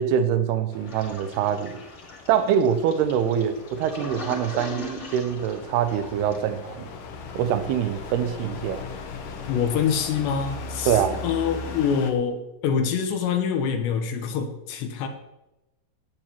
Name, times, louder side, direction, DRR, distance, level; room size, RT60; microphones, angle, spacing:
voice 1, 0.0-1.8 2.3-6.9 7.3-8.8 10.9-11.2, right 8 dB, 80° right, 10 dB, 2.6 m, -24 dB
sound 1, 0.7-12.1, left 4 dB, 60° left, 2.5 m, -39 dB
Toilet flush, 0.9-6.6, left 2 dB, 25° left, 1.5 m, -40 dB
voice 2, 9.5-15.1, left 7 dB, 80° left, 6 dB, 3.2 m, -25 dB
17.0 x 8.9 x 4.5 m, 0.96 s
omnidirectional pair, 5.2 m